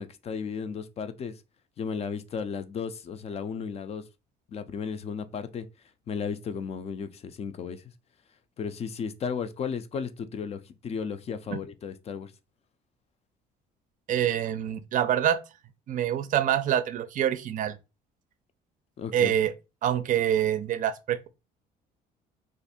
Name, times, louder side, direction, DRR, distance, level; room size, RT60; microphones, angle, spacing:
voice 1, 0.0-1.3 1.8-4.0 4.5-5.7 6.1-7.8 8.6-12.3 19.0-19.3, left 6 dB, 40° left, 0.4 m, -34 dB
voice 2, 14.1-15.4 15.9-17.7 19.1-19.5 19.8-21.3, right 10 dB, 50° right, 0.5 m, -26 dB
2.6 x 2.5 x 4.1 m
cardioid pair, 110°, 17 cm